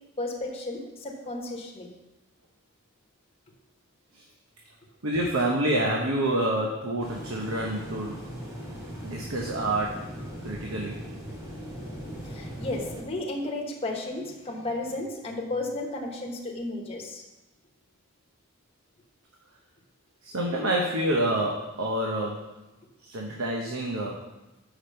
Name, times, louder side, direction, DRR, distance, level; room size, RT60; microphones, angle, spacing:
voice 1, 0.2-1.9 12.2-17.2, left 2 dB, 25° left, 0 dB, 1.1 m, -33 dB
voice 2, 5.0-8.3 9.0-10.1 10.4-11.0 20.2-22.5 23.0-24.2, right 1 dB, 75° right, -1 dB, 0.9 m, -28 dB
sound 1, 7.0-13.0, equal, 15° right, 2.5 m, -39 dB
5.9 x 5.0 x 6.7 m, 1.1 s
head